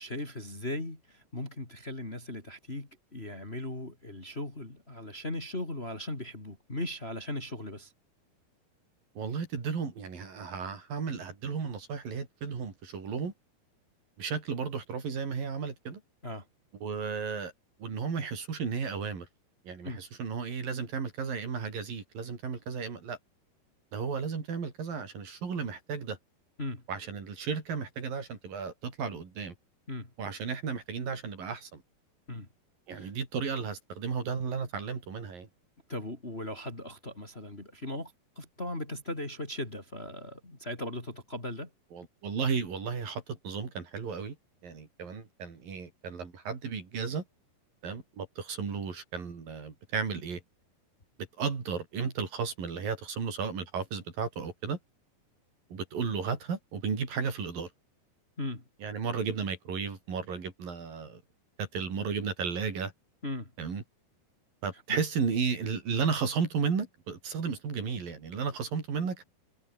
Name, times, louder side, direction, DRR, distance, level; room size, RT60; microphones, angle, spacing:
voice 1, 0.0-7.9 16.2-16.4 19.8-20.0 26.6-26.8 29.9-30.1 32.3-32.5 32.9-33.1 35.9-41.7 58.4-58.6 63.2-63.5 64.9-65.0 69.0-69.1, left 1 dB, 15° left, 3.2 m, -38 dB
voice 2, 9.2-13.3 14.2-16.0 16.8-17.5 17.8-19.3 19.6-23.2 23.9-26.2 26.9-29.6 30.2-31.8 32.9-35.5 41.9-44.4 44.6-47.2 47.8-50.4 51.4-54.8 55.7-57.7 58.8-61.2 61.6-62.9 63.6-63.8 64.6-69.2, right 5 dB, 60° right, 5.9 m, -34 dB
omnidirectional pair, 4.6 m